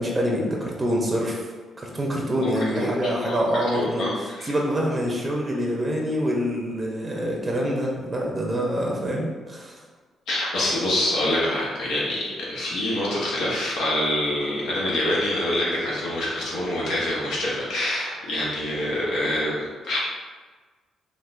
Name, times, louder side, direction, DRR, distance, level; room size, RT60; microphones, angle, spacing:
voice 1, 0.0-1.5 1.8-9.8, equal, 20° right, -2 dB, 0.6 m, -26 dB
voice 2, 2.4-3.4 3.7-4.5 10.3-20.0, left 1 dB, 80° left, -5 dB, 0.7 m, -26 dB
3.5 x 2.4 x 2.5 m, 1.4 s
cardioid pair, 90°, 0 cm